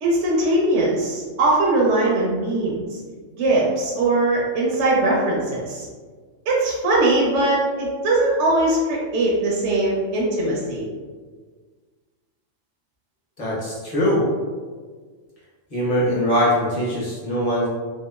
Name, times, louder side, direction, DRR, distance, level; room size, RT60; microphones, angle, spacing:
voice 1, 0.0-2.8 3.4-5.8 6.5-10.9, right 2 dB, 70° right, -4 dB, 0.8 m, -20 dB
voice 2, 13.4-14.2 15.7-17.7, equal, 35° left, -7 dB, 0.8 m, -21 dB
2.8 x 2.3 x 2.3 m, 1.5 s
omnidirectional pair, 1.3 m